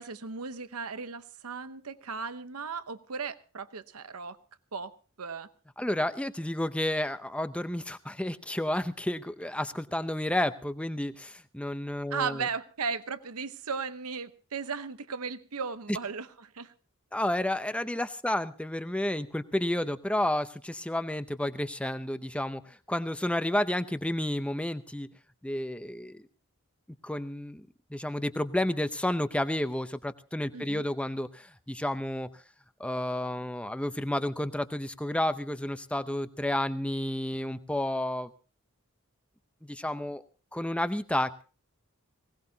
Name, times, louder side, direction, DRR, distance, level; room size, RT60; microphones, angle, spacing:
voice 1, 0.0-4.4 4.7-5.5 12.1-16.7 30.5-30.9, right 5 dB, 85° right, 12 dB, 0.9 m, -36 dB
voice 2, 5.8-12.5 17.1-25.1 25.4-26.2 27.0-32.4 32.8-38.3 39.6-40.2 40.5-41.4, left 1 dB, 5° left, 11 dB, 0.6 m, -31 dB
20.5 x 18.0 x 2.8 m, 0.36 s
head